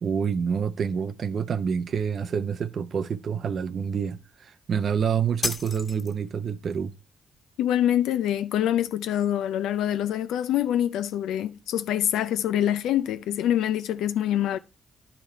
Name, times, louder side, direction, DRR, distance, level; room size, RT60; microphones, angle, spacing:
voice 1, 0.0-6.9, right 7 dB, 55° right, 0.7 m, -27 dB
sound 1, 5.4-6.4, left 3 dB, 35° left, 1.8 m, -32 dB
voice 2, 7.6-14.6, left 11 dB, 85° left, 0.4 m, -25 dB
11.0 x 5.1 x 4.4 m
cardioid pair, 90°, 0 cm